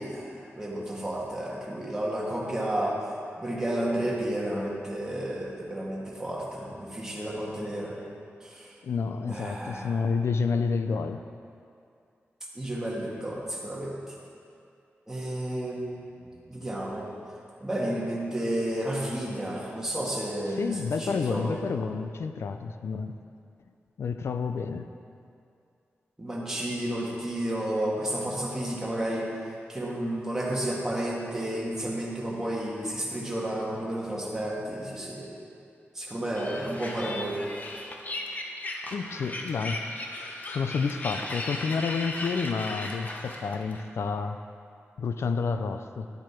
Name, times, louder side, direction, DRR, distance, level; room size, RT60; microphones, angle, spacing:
voice 1, 0.0-3.0 3.4-7.9 8.4-8.7 9.3-9.9 12.5-13.9 15.1-17.1 17.6-20.7 21.0-21.6 26.2-29.3 29.7-35.3 35.9-37.4, right 1 dB, 10° right, -5 dB, 1.8 m, -31 dB
voice 2, 8.8-11.2 20.5-23.1 24.0-24.9 38.9-39.9 40.2-44.4 45.0-46.1, left 5 dB, 75° left, 8 dB, 0.4 m, -30 dB
sound 1, 36.3-43.8, left 2 dB, 35° left, 0.8 m, -36 dB
11.5 x 7.5 x 4.5 m, 2.5 s
wide cardioid pair, 155°, 5 cm